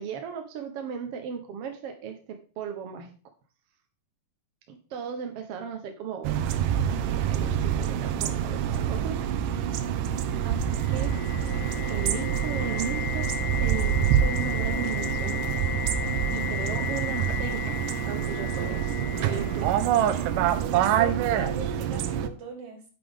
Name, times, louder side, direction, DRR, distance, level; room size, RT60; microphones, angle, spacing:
voice 1, 0.0-3.1 4.7-9.2 10.4-11.1 11.9-13.3 13.6-15.7 16.0-19.7, right 7 dB, 65° right, 5 dB, 1.6 m, -37 dB
sound 1, 6.2-22.3, right 9 dB, 85° right, 2.4 m, -26 dB
sound 2, 10.4-20.3, left 10 dB, 70° left, 1.9 m, -35 dB
voice 2, 19.1-19.6 20.6-22.9, right 3 dB, 50° right, 0 dB, 3.6 m, -40 dB
9.2 x 9.0 x 3.5 m, 0.38 s
omnidirectional pair, 3.7 m